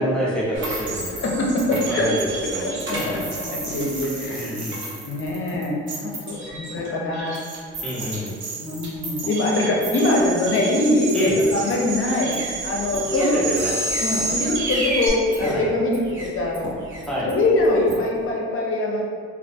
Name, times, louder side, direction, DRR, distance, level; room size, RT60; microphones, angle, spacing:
voice 1, 0.0-1.2 1.9-2.6 3.0-3.3 4.3-4.8 7.8-8.3 11.1-11.4 13.2-13.8 15.4-15.7 17.1-17.3, equal, 5° left, -7 dB, 0.6 m, -27 dB
sound 1, 0.5-5.8 6.5-7.1 7.7-8.3 8.6-18.3, right 1 dB, 40° right, 0.8 m, -38 dB
sound 2, 0.6-15.1, right 3 dB, 75° right, 0.8 m, -30 dB
voice 2, 1.2-2.1 2.6-4.6 5.1-7.4 8.6-13.5 14.0-16.7 17.2-19.0, left 2 dB, 45° left, -2 dB, 0.6 m, -23 dB
2.4 x 2.1 x 2.6 m, 2.1 s
cardioid pair, 90°, 30 cm